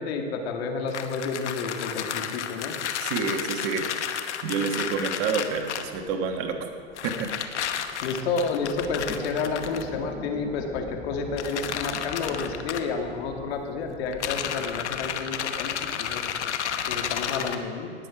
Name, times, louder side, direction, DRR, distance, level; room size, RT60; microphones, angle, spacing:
voice 1, 0.0-2.7 8.0-16.2 16.9-17.9, left 4 dB, 60° left, 3 dB, 2.0 m, -30 dB
sound 1, 0.9-6.0 7.0-9.8 11.4-12.8 14.1-17.6, left 9 dB, 80° left, 1.1 m, -32 dB
voice 2, 3.0-3.9 4.4-6.7 7.0-7.3, right 5 dB, 45° right, 5 dB, 1.5 m, -28 dB
sound 2, 5.5-15.4, left 2 dB, 5° left, 0.8 m, -43 dB
18.5 x 7.4 x 4.8 m, 2.5 s
hypercardioid pair, 115°, 35 cm